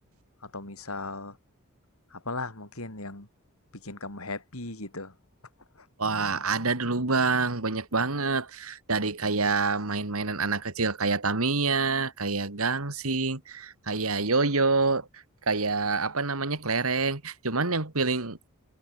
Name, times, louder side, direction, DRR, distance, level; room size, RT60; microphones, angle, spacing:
voice 1, 0.5-1.3 2.3-3.3 3.8-5.1, left 3 dB, 75° left, 6.0 m, -37 dB
voice 2, 6.0-18.5, right 3 dB, 80° right, 2.5 m, -27 dB
head